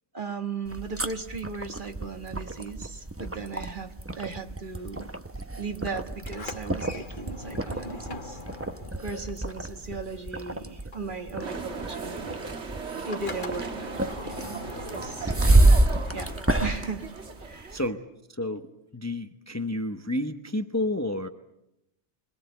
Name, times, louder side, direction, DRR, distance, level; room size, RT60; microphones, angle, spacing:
voice 1, 0.1-5.1 5.6-8.4 9.0-12.4 13.0-15.4 16.1-16.3 16.6-17.1 17.4-17.8, right 4 dB, 45° right, 5 dB, 1.7 m, -37 dB
sound 1, 0.6-17.9, right 2 dB, 15° right, 0.8 m, -28 dB
Sliding door, 6.2-10.4 10.7-17.1, left 2 dB, 45° left, 1.8 m, -43 dB
sound 2, 11.4-17.9, right 4 dB, 75° right, 1.8 m, -38 dB
voice 2, 17.7-18.0 18.4-18.7 18.9-21.3, left 1 dB, 15° left, 7 dB, 0.8 m, -30 dB
25.0 x 20.5 x 8.0 m, 0.88 s
omnidirectional pair, 1.2 m